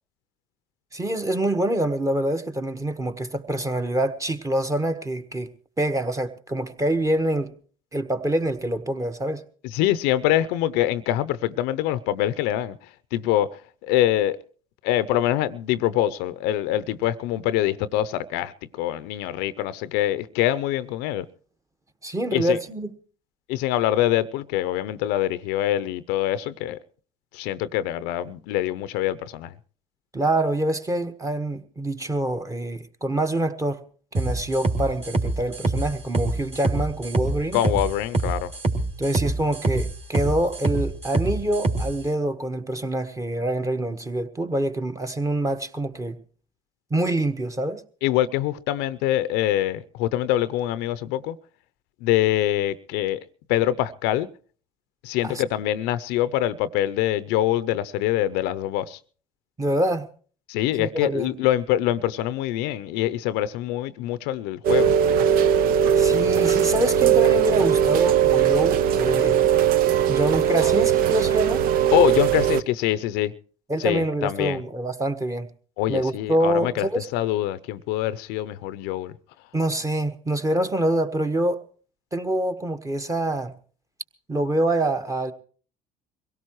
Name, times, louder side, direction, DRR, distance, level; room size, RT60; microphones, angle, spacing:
voice 1, 0.9-5.5 5.8-7.5 7.9-9.4 22.0-22.9 30.1-33.8 34.1-37.6 39.0-46.2 46.9-47.8 55.2-55.4 59.6-60.1 60.8-61.4 66.0-69.4 70.1-71.6 73.7-75.5 75.9-77.1 79.5-81.6 82.1-83.5 84.3-85.3, right 1 dB, 20° right, 1.4 m, -25 dB
voice 2, 9.7-12.8 13.1-13.5 13.8-14.4 14.8-21.3 22.3-22.6 23.5-26.8 27.3-29.5 37.5-38.5 48.0-51.4 52.0-53.2 53.5-54.3 55.0-59.0 60.5-64.9 71.9-73.3 73.8-74.6 75.8-76.9 77.1-79.1, left 13 dB, 70° left, 0.6 m, -24 dB
sound 1, 34.1-41.9, right 2 dB, 35° right, 3.0 m, -25 dB
Rain, 64.6-72.6, right 9 dB, 60° right, 0.6 m, -19 dB
23.0 x 17.0 x 3.1 m
supercardioid pair, 80°, 17 cm